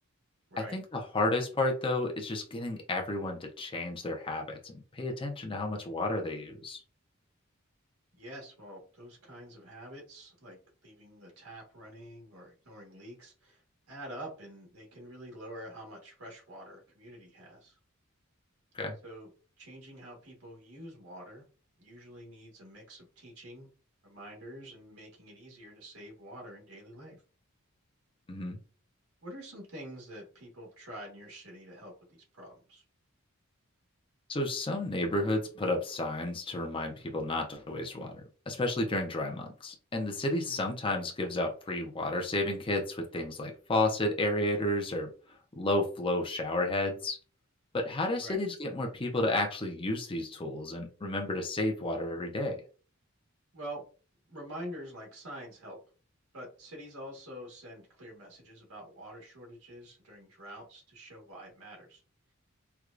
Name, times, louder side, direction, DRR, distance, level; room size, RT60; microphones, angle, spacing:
voice 1, 0.6-6.8 18.7-19.0 28.3-28.6 34.3-45.1 45.6-47.2 47.7-52.6, left 2 dB, 25° left, 2 dB, 0.6 m, -32 dB
voice 2, 8.2-10.6 10.8-13.6 13.9-17.8 19.0-19.3 19.6-21.4 21.8-23.7 24.0-27.2 29.2-32.8 40.5-40.7 48.2-48.4 53.5-53.8 54.3-55.8 56.3-62.0, right 1 dB, 90° right, -1 dB, 1.5 m, -47 dB
4.5 x 2.3 x 2.5 m, 0.37 s
head